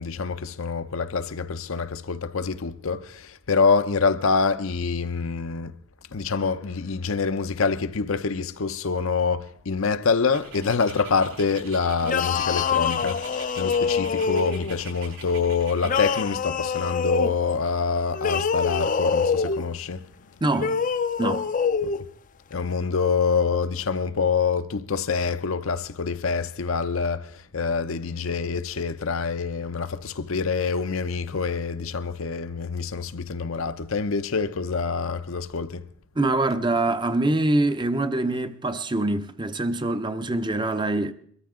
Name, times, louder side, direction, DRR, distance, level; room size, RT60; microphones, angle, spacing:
voice 1, 0.0-5.7 6.1-20.1 21.8-21.9 22.5-35.8, left 5 dB, 75° left, 0.7 m, -26 dB
Dog, 10.3-16.3, right 3 dB, 75° right, 7.8 m, -43 dB
sound 1, 12.0-14.8 15.8-17.3 18.1-19.7 20.5-22.0, left 6 dB, 40° left, 0.5 m, -25 dB
voice 2, 20.4-20.8 21.2-21.5 36.2-41.1, right 2 dB, 20° right, 0.6 m, -24 dB
22.5 x 14.0 x 3.7 m
head